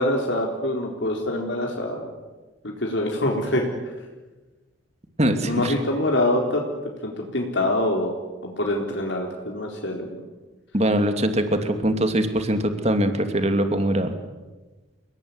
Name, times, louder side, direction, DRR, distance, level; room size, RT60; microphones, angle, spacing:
voice 1, 0.0-2.1 2.6-3.9 5.5-6.6 7.0-8.1 8.4-10.2, left 1 dB, 65° left, 0 dB, 4.1 m, -25 dB
voice 2, 5.2-5.7 10.7-14.1, right 1 dB, 35° right, 7 dB, 2.8 m, -22 dB
29.5 x 19.5 x 9.7 m, 1.2 s
head